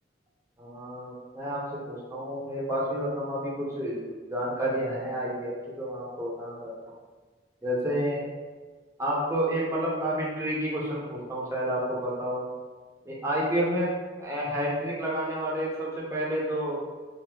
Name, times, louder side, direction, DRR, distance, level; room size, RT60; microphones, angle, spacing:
voice 1, 0.6-4.0 4.3-6.7 7.6-8.2 9.0-12.4 13.1-13.9 14.2-16.8, equal, 15° right, -6 dB, 0.6 m, -30 dB
3.0 x 2.6 x 2.3 m, 1.4 s
head